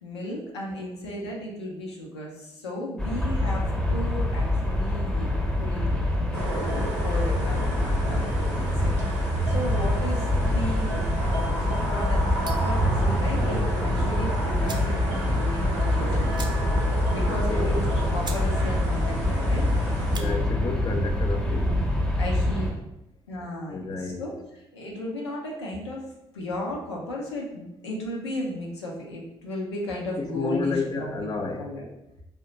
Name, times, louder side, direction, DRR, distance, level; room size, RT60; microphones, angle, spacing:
voice 1, 0.0-6.0 6.3-10.3 10.5-16.3 17.1-19.7 20.1-20.4 22.2-22.7 23.3-24.3 24.7-31.9, left 1 dB, 85° left, 0.5 m, -35 dB
sound 1, 3.0-22.7, left 1 dB, 5° left, 0.9 m, -25 dB
sound 2, 6.3-20.2, right 1 dB, 85° right, 0.6 m, -34 dB
sound 3, 12.4-12.8 14.1-14.2 14.6-15.0 15.3-15.4 15.7-15.8 16.3-16.9 17.3-17.4 17.8-17.9 18.2-18.5 18.8-19.2 19.9-20.3, right 3 dB, 30° right, 0.6 m, -40 dB
voice 2, 17.3-17.8 20.1-21.8 23.7-24.3 30.2-31.8, left 4 dB, 30° left, 0.4 m, -31 dB
2.8 x 2.1 x 3.7 m
figure-of-eight pair, 45°, 14 cm